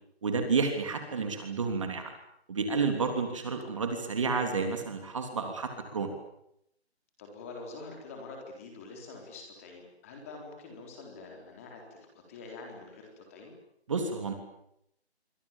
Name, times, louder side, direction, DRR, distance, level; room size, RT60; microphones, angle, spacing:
voice 1, 0.2-2.1 2.5-6.1 13.9-14.3, right 4 dB, 30° right, 5 dB, 3.2 m, -30 dB
voice 2, 7.2-13.5, left 3 dB, 15° left, 2 dB, 4.0 m, -46 dB
28.5 x 25.0 x 7.4 m, 0.77 s
hypercardioid pair, 175°, 33 cm